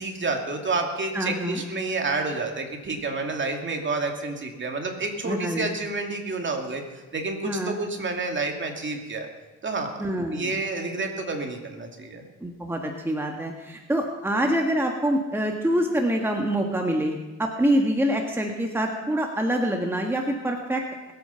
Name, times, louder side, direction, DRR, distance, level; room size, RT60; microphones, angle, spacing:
voice 1, 0.0-9.3 9.6-12.2, right 3 dB, 40° right, 3 dB, 2.6 m, -29 dB
voice 2, 1.1-1.6 5.2-5.6 7.4-7.7 10.0-10.6 12.4-20.8, right 1 dB, 10° right, 2 dB, 1.6 m, -25 dB
20.5 x 8.7 x 5.7 m, 1.2 s
cardioid pair, 90°, 30 cm